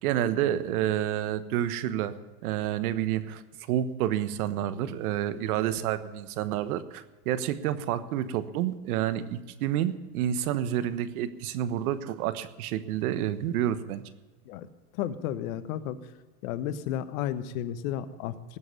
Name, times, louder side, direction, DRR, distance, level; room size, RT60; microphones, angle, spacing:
voice 1, 0.0-2.1 2.4-3.4 3.7-14.0, right 11 dB, 65° right, 13 dB, 1.3 m, -29 dB
voice 2, 14.9-16.0 16.4-18.6, left 10 dB, 60° left, 12 dB, 1.2 m, -33 dB
19.5 x 7.8 x 6.9 m, 1.3 s
supercardioid pair, 125°, 47 cm